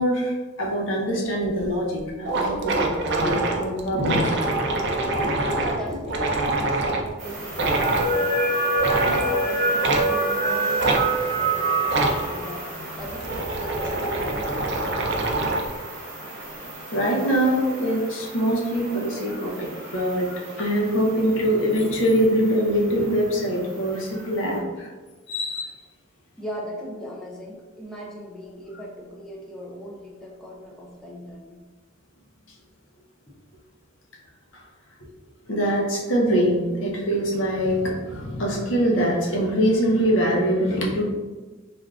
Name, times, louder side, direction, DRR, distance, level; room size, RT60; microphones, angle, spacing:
voice 1, 0.0-2.9 3.2-4.4 16.2-16.3 16.6-24.9 25.3-25.7 35.5-41.1, equal, 70° left, -2 dB, 0.7 m, -23 dB
sound 1, 1.6-1.7 2.0-2.1 2.2-7.1 7.5-8.1 8.8-9.3 9.8-10.1 10.8-11.0 11.9-12.2 13.0-15.7, right 2 dB, 55° right, 0.4 m, -25 dB
voice 2, 5.1-8.6 9.0-12.7 13.0-14.1 26.4-31.6 33.3-33.4, equal, 5° left, -3 dB, 0.5 m, -38 dB
sound 2, 7.2-24.6, right 2 dB, 35° right, 0.8 m, -29 dB
3.5 x 2.4 x 2.3 m, 1.3 s
head